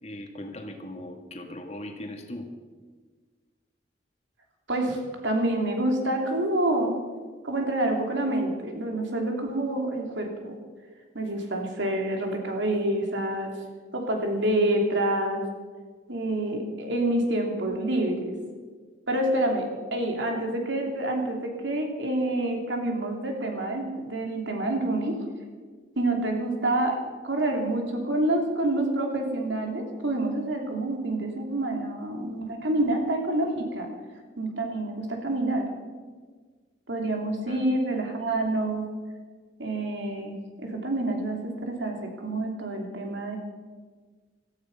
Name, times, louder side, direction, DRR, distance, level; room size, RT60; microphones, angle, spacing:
voice 1, 0.0-2.5 37.5-37.6, left 1 dB, 35° left, 3 dB, 2.0 m, -39 dB
voice 2, 4.7-7.0 7.4-10.5 11.1-13.5 13.9-15.4 16.1-18.3 19.1-25.2 26.0-27.0 27.2-33.9 34.4-35.6 36.9-38.8 39.6-43.4, right 1 dB, 75° right, 2 dB, 3.0 m, -27 dB
17.5 x 14.0 x 5.6 m, 1.5 s
head